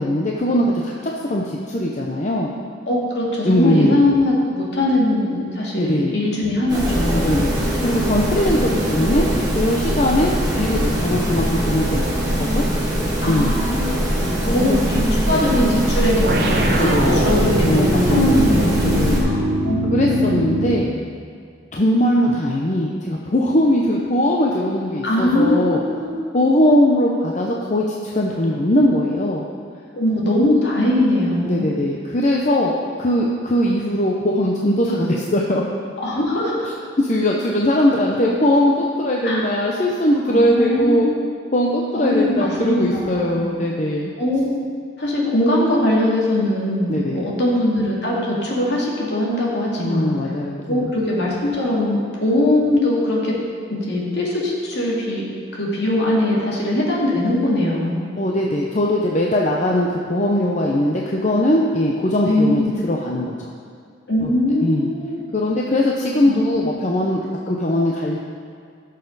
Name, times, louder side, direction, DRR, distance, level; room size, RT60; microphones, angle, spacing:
voice 1, 0.0-2.5 3.4-4.0 5.8-6.1 7.1-9.2 9.5-12.0 12.4-12.7 13.2-13.5 14.2-14.6 16.8-17.2 17.6-19.3 19.9-20.9 21.7-25.8 26.3-29.4 31.4-35.6 37.0-41.1 41.5-44.1 46.9-47.2 49.8-50.9 58.2-63.5 64.2-64.3 64.6-64.9 65.3-67.2 67.5-68.2, left 1 dB, 40° left, -2 dB, 0.8 m, -20 dB
voice 2, 2.9-7.3 13.2-13.9 14.5-20.4 25.0-26.2 29.9-31.8 36.0-36.7 39.2-39.4 40.3-41.3 41.9-43.4 44.2-44.5 45.0-50.1 50.7-53.3 53.7-55.2 55.5-58.1 62.2-62.7 64.1-65.2 66.3-66.7, left 1 dB, 65° left, -4 dB, 2.6 m, -21 dB
sound 1, 6.7-19.2, equal, 20° right, 2.2 m, -21 dB
sound 2, 16.2-20.9, equal, 55° right, 1.2 m, -22 dB
17.0 x 6.7 x 4.1 m, 2.2 s
head